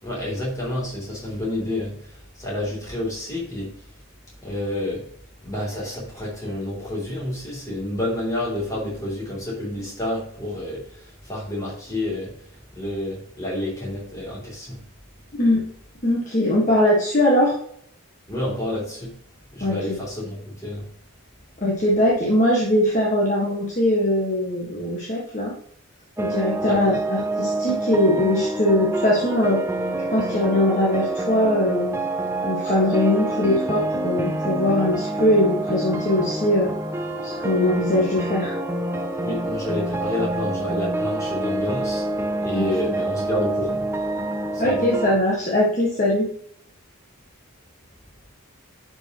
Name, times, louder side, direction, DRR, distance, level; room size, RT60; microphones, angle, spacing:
voice 1, 0.0-3.7 4.4-5.1 5.4-12.5 12.7-14.8 18.3-19.1 19.5-20.9 26.6-27.0 39.2-42.0 42.4-43.9 44.5-44.9, left 1 dB, 15° left, -5 dB, 3.0 m, -29 dB
voice 2, 15.3-15.6 16.0-17.5 19.6-20.0 21.6-25.5 26.2-29.6 30.1-32.0 32.4-36.7 37.2-38.5 42.5-42.7 44.6-46.3, left 1 dB, 35° left, -5 dB, 1.6 m, -21 dB
sound 1, 26.2-45.1, right 1 dB, 10° right, 0.6 m, -27 dB
10.5 x 5.4 x 3.0 m, 0.65 s
head